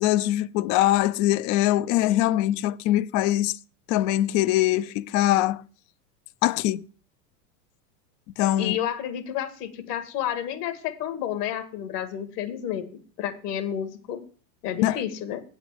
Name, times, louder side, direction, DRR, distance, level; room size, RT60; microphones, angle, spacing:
voice 1, 0.0-3.5 3.9-5.6 6.4-6.8 8.4-8.8 14.8-15.0, left 14 dB, 40° left, 0.5 m, -22 dB
voice 2, 8.6-12.9 13.2-14.2 14.6-15.4, left 10 dB, 70° left, 2.0 m, -30 dB
8.6 x 5.2 x 7.8 m
hypercardioid pair, 110°, 48 cm